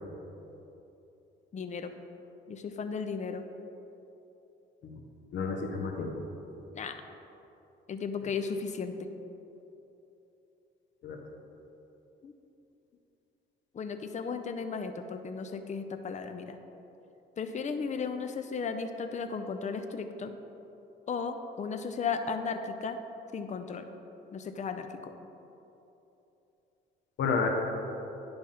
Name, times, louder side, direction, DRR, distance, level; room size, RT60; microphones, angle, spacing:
voice 1, 1.5-1.9 2.5-3.4 6.7-6.9 7.9-8.9 12.2-12.3 13.7-16.6 17.4-20.3 21.1-23.0 23.3-23.9 24.3-25.1, left 5 dB, 35° left, 7 dB, 0.6 m, -35 dB
voice 2, 5.3-6.1 11.0-11.2 27.2-27.5, left 5 dB, 70° left, 2 dB, 0.9 m, -30 dB
10.0 x 3.5 x 5.5 m, 3.0 s
cardioid pair, 90°, 20 cm